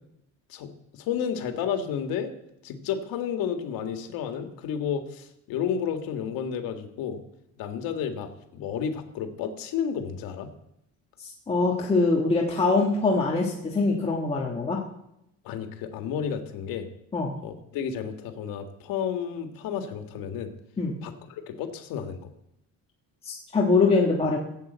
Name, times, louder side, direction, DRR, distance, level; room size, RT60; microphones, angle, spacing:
voice 1, 0.5-2.3 2.6-7.2 7.6-10.5 15.4-16.9 17.4-20.5 21.0-22.3, left 7 dB, 85° left, 6 dB, 1.9 m, -31 dB
voice 2, 11.2-14.8 17.1-17.3 20.8-21.0 23.2-24.4, left 3 dB, 15° left, -2 dB, 1.4 m, -23 dB
16.5 x 8.1 x 8.0 m, 0.82 s
cardioid pair, 170°, 34 cm